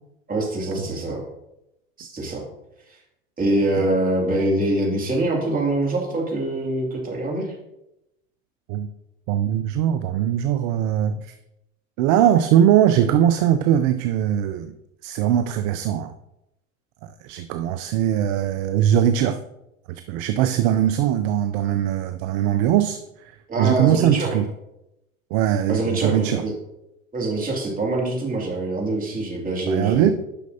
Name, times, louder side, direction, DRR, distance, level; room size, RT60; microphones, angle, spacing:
voice 1, 0.3-1.2 2.0-2.4 3.4-7.5 23.5-24.3 25.7-26.5 27.1-30.1, right 2 dB, 20° right, -1 dB, 2.6 m, -24 dB
voice 2, 9.3-11.3 12.0-14.7 15.0-16.1 17.2-19.4 19.9-24.5 25.3-26.4 29.7-30.1, right 10 dB, 50° right, 10 dB, 0.5 m, -21 dB
9.9 x 6.3 x 2.8 m, 0.88 s
hypercardioid pair, 95°, 40 cm